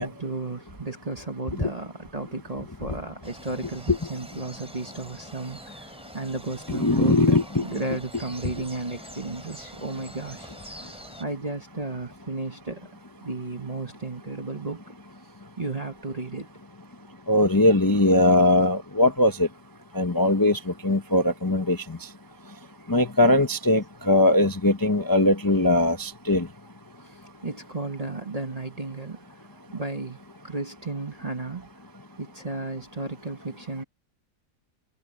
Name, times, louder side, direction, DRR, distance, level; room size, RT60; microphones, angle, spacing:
voice 1, 0.0-10.5 11.2-12.9 13.2-14.8 15.6-16.5 27.0-29.2 29.7-30.2 30.4-31.7 32.2-33.8, right 3 dB, 25° right, 1.1 m, -34 dB
Morning in Tingo Peru rooster, 3.2-11.2, equal, 5° right, 3.1 m, -45 dB
voice 2, 6.7-7.7 17.3-19.5 19.9-22.0 22.9-26.5, left 1 dB, 15° left, 0.8 m, -20 dB
omnidirectional pair, 1.7 m